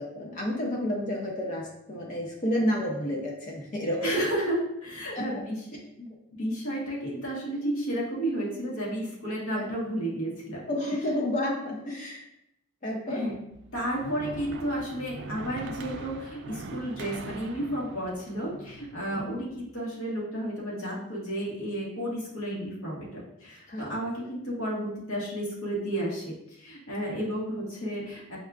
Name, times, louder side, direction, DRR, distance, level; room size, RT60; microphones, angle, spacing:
voice 1, 0.0-4.3 5.1-5.3 9.5-9.7 10.7-12.2 12.8-13.2 19.1-19.2 23.7-23.9 27.1-27.2, left 1 dB, 35° left, -1 dB, 0.5 m, -30 dB
voice 2, 4.0-5.6 6.0-6.1 6.4-10.6 13.1-13.3 13.7-28.4, right 1 dB, 70° left, -5 dB, 1.2 m, -32 dB
sound 1, 13.5-19.7, right 3 dB, 55° right, 0.3 m, -42 dB
5.3 x 2.4 x 2.3 m, 0.80 s
head